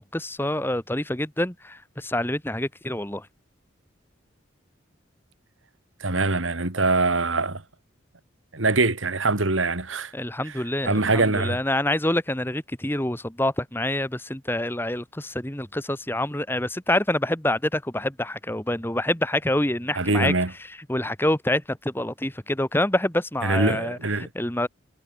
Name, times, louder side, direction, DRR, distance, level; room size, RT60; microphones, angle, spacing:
voice 1, 0.0-3.3 10.1-20.3 20.9-24.0 24.4-24.7, left 1 dB, 10° left, 1.7 m, -26 dB
voice 2, 6.0-7.6 8.5-10.1 10.9-11.6 19.9-20.5 23.4-24.3, right 3 dB, 85° right, 2.5 m, -23 dB
head